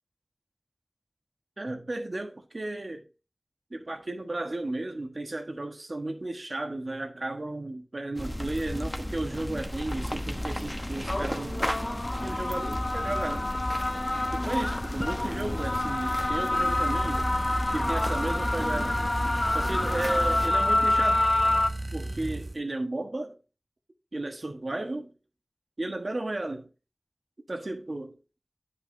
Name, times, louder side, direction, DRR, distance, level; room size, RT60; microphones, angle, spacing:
voice 1, 1.6-3.1 3.7-13.5 14.3-17.3 17.7-19.0 19.5-21.2 21.9-23.4 24.1-25.1 25.8-26.7 27.5-28.2, right 2 dB, 75° right, 1.3 m, -34 dB
sound 1, 8.2-20.5, equal, 15° left, 1.0 m, -34 dB
sound 2, 9.9-21.7, left 2 dB, 50° left, 0.5 m, -28 dB
sound 3, 16.5-22.6, right 1 dB, 60° right, 0.4 m, -34 dB
10.0 x 5.7 x 2.7 m
wide cardioid pair, 40°, 0 cm